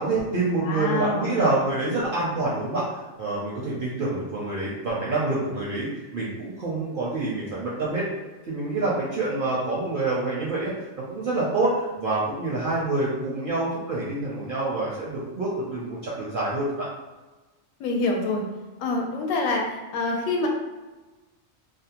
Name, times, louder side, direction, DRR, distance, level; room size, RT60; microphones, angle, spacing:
voice 1, 0.0-8.0 8.4-16.9, right 2 dB, 60° right, -6 dB, 0.5 m, -27 dB
voice 2, 0.6-1.4 17.8-18.5 18.8-20.5, left 2 dB, 75° left, 0 dB, 0.9 m, -26 dB
2.6 x 2.0 x 2.8 m, 1.2 s
omnidirectional pair, 1.4 m